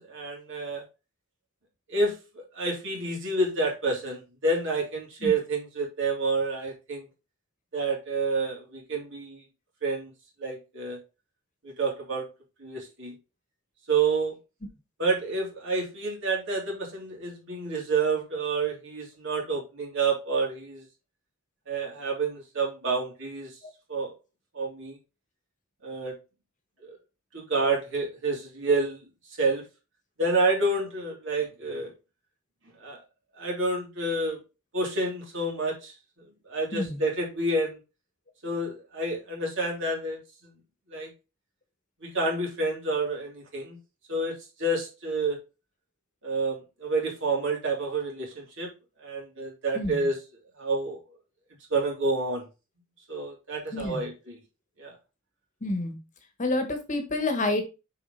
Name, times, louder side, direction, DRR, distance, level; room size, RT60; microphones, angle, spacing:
voice 1, 0.1-0.8 1.9-7.0 7.7-9.4 9.8-10.1 10.4-11.0 11.6-12.2 12.6-13.1 13.9-14.3 15.0-20.8 21.7-23.5 23.9-24.1 24.5-25.0 25.8-26.1 26.8-27.0 27.3-29.0 29.4-29.6 30.2-31.9 32.8-33.0 33.4-34.4 34.7-35.9 36.4-37.8 38.4-40.2 40.9-41.1 42.0-43.8 44.1-45.4 46.2-48.7 49.0-50.2 50.6-51.0 51.7-52.4 53.1-54.4 54.8-55.0, right 3 dB, 60° right, 3.1 m, -29 dB
voice 2, 36.7-37.0 49.7-50.1 53.7-54.1 55.6-56.0 56.4-57.6, left 2 dB, 35° left, 1.4 m, -28 dB
6.6 x 4.9 x 4.0 m
head